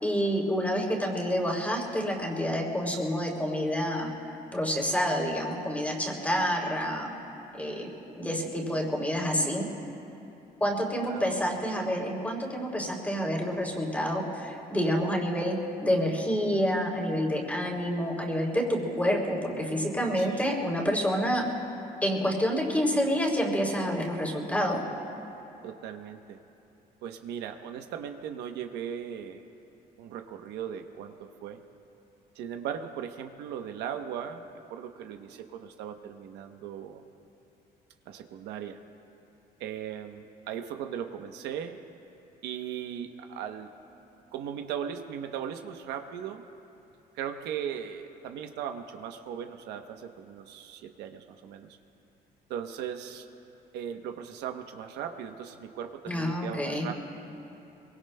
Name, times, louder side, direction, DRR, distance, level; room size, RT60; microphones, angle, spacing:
voice 1, 0.0-4.1 4.5-7.1 7.5-9.7 10.6-21.4 22.0-24.8 56.1-56.9, equal, 10° left, -1 dB, 3.0 m, -28 dB
voice 2, 11.1-11.5 20.2-20.5 25.6-26.4 27.0-29.4 30.0-31.6 32.3-34.4 34.7-37.0 38.1-38.8 39.6-41.8 42.4-43.7 44.3-46.4 47.1-51.7 52.5-53.3 53.7-56.9, right 8 dB, 85° right, 6 dB, 0.9 m, -38 dB
23.5 x 23.0 x 2.2 m, 2.9 s
cardioid pair, 110°, 17 cm